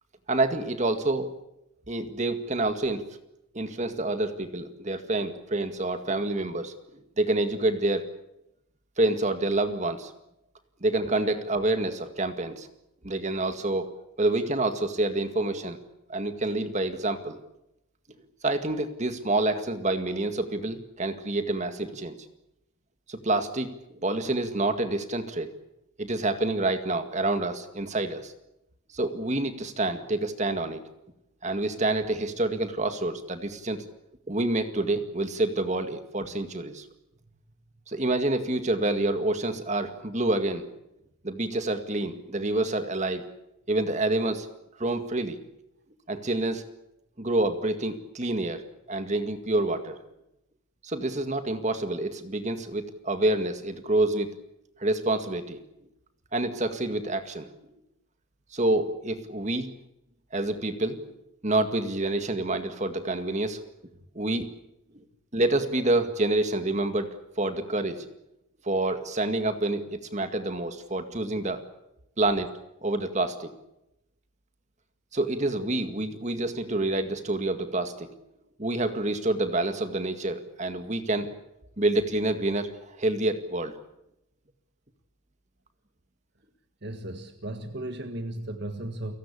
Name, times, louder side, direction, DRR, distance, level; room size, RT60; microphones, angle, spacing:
voice 1, 0.3-1.3 1.9-3.0 3.5-8.0 9.0-10.1 10.8-12.7 13.0-13.9 14.2-15.8 16.1-17.4 18.4-22.2 23.1-25.5 26.0-28.3 28.9-30.8 31.4-33.8 34.3-36.9 37.9-40.7 41.2-43.2 43.7-44.5 44.8-45.4 46.1-46.6 47.2-48.6 48.9-50.0 50.8-54.3 54.8-55.6 56.3-57.5 58.5-59.7 60.3-61.1 61.4-63.6 64.1-64.5 64.9-65.0 65.3-68.1 68.6-71.6 72.2-72.5 72.8-73.5 75.1-78.1 78.6-81.3 81.8-83.7, right 2 dB, 35° right, 9 dB, 2.0 m, -27 dB
voice 2, 86.8-89.2, right 1 dB, 50° right, 7 dB, 1.7 m, -35 dB
30.0 x 17.5 x 8.5 m, 0.87 s
head